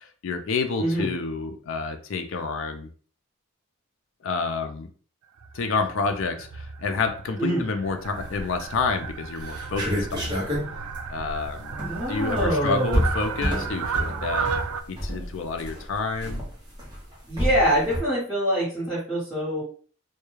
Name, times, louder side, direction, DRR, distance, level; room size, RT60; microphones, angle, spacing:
voice 1, 0.0-2.9 4.2-4.9 5.5-10.4 11.1-11.7 12.1-14.5 14.9-16.5, left 4 dB, 65° left, 6 dB, 0.4 m, -29 dB
voice 2, 0.8-1.1 7.4-7.6 11.7-13.0 17.3-19.6, equal, ahead, -10 dB, 1.1 m, -25 dB
Fowl, 5.4-14.8, right 6 dB, 85° right, 0.3 m, -34 dB
sound 1, 8.2-8.7 9.1-9.2 9.4-18.0, equal, 20° right, 0.7 m, -29 dB
2.2 x 2.2 x 3.0 m, 0.43 s
head